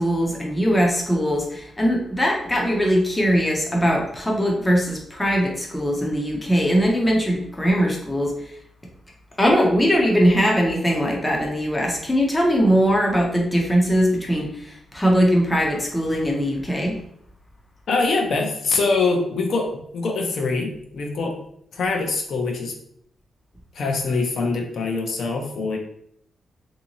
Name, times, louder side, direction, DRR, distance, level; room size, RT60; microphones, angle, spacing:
voice 1, 0.0-8.3 9.4-17.0, equal, 5° left, -1 dB, 0.6 m, -20 dB
voice 2, 17.9-21.4 21.7-22.7 23.7-25.8, left 3 dB, 60° left, 1 dB, 0.6 m, -24 dB
3.6 x 2.7 x 2.8 m, 0.69 s
wide cardioid pair, 170°, 0 cm